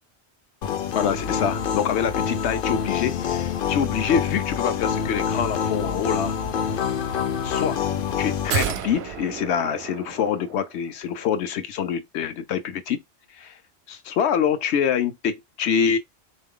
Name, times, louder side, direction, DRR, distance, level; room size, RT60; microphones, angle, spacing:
sound 1, 0.6-8.5, left 7 dB, 60° left, 0.7 m, -26 dB
voice 1, 0.9-6.4 7.4-7.9 8.2-13.0 13.3-13.6 13.9-16.0, left 7 dB, 85° left, 1.0 m, -25 dB
sound 2, 8.5-10.9 11.1-11.2, right 7 dB, 70° right, 0.8 m, -31 dB
3.7 x 2.6 x 3.6 m
omnidirectional pair, 1.1 m